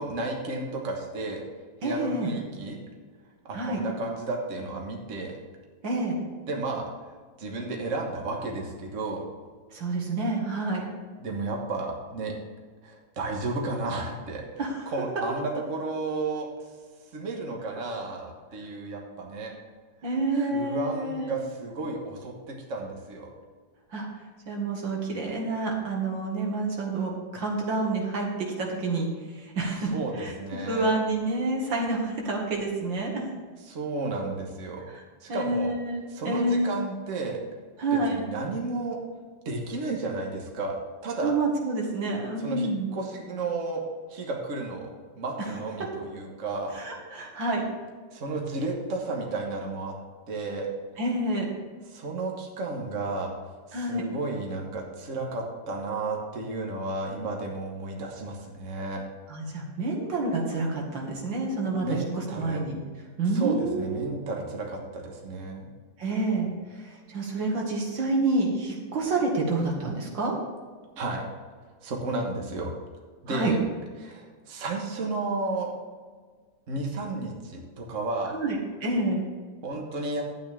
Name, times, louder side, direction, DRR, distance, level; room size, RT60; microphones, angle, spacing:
voice 1, 0.0-1.4 1.8-2.8 3.4-5.4 6.5-6.8 7.4-9.3 11.2-12.3 12.8-14.4 14.9-16.7 17.1-19.5 20.3-23.3 29.8-30.9 33.7-34.8 35.2-35.7 36.1-37.4 37.9-39.0 39.4-41.4 42.4-43.8 44.1-44.9 45.2-46.8 48.1-49.9 50.3-50.7 51.9-53.3 53.7-59.0 61.8-62.6 63.3-65.7 71.0-71.3 71.8-72.7 73.2-73.6 74.0-75.7 76.7-78.3 79.6-80.2, right 3 dB, 45° right, 0 dB, 1.7 m, -32 dB
voice 2, 1.8-2.3 3.5-3.8 5.8-6.2 9.7-10.9 14.6-14.9 20.0-21.4 23.9-24.1 24.5-29.1 29.3-30.3 30.7-33.2 34.9-35.0 35.3-36.8 37.8-38.2 41.2-42.9 46.7-47.6 51.0-51.5 53.7-54.0 59.3-61.9 62.4-62.8 63.2-64.1 66.0-70.3 73.3-73.5 78.3-79.2, right 2 dB, 80° right, -1 dB, 2.7 m, -28 dB
12.0 x 8.8 x 3.6 m, 1.5 s
omnidirectional pair, 2.0 m